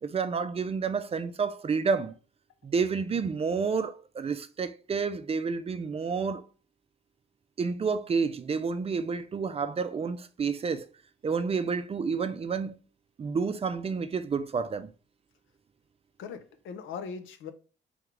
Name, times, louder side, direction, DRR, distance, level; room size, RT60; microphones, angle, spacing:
voice 1, 0.0-2.2 2.6-6.4 7.6-10.9 11.2-12.8 13.2-14.9, right 5 dB, 30° right, 0.4 m, -30 dB
voice 2, 16.2-17.5, left 6 dB, 80° left, 0.6 m, -39 dB
3.5 x 3.5 x 3.2 m
cardioid pair, 90°, 20 cm